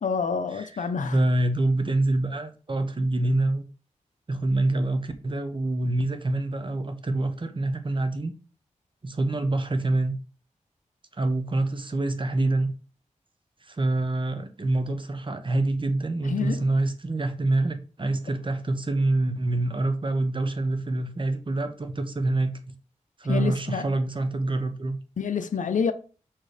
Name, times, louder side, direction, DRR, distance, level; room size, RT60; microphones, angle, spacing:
voice 1, 0.0-1.2 16.3-16.7 23.3-23.9 25.2-25.9, left 6 dB, 80° left, 0.7 m, -27 dB
voice 2, 0.5-3.6 4.3-8.3 9.0-10.1 11.1-12.7 13.6-22.7 23.2-25.0, right 2 dB, 40° right, 1.1 m, -26 dB
6.0 x 4.5 x 5.0 m
wide cardioid pair, 105°, 13 cm